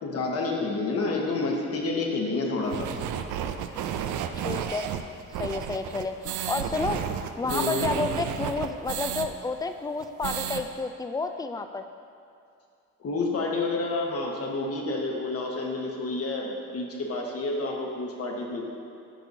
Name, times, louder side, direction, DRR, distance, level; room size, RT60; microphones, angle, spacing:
voice 1, 0.0-2.9 7.4-7.9 13.0-18.6, left 3 dB, 50° left, -1 dB, 1.2 m, -29 dB
sound 1, 2.7-9.3 9.6-9.7 10.0-10.6, right 9 dB, 80° right, 0.5 m, -32 dB
voice 2, 4.4-4.9 5.4-7.0 7.4-11.8, left 3 dB, 15° left, 8 dB, 0.3 m, -30 dB
10.0 x 6.0 x 2.7 m, 2.6 s
cardioid pair, 90°, 30 cm